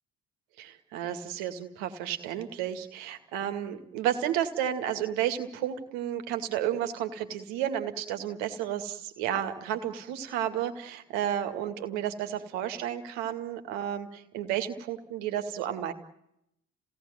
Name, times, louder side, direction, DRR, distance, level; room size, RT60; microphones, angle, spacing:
voice 1, 0.6-15.9, right 10 dB, 65° right, 7 dB, 2.3 m, -32 dB
30.0 x 18.0 x 9.4 m, 0.81 s
figure-of-eight pair, 40°, 48 cm